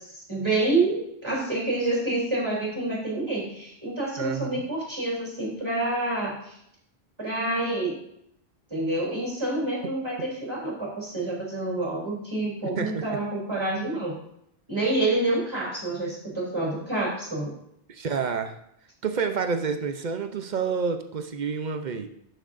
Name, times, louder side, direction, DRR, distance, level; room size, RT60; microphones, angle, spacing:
voice 1, 0.0-6.6 7.2-8.0 8.7-14.2 14.7-17.5, right 2 dB, 25° right, -4 dB, 3.3 m, -28 dB
voice 2, 4.2-4.6 12.8-13.1 17.9-18.5 19.0-22.1, right 5 dB, 50° right, 7 dB, 0.8 m, -29 dB
11.0 x 6.5 x 2.6 m, 0.76 s
omnidirectional pair, 1.1 m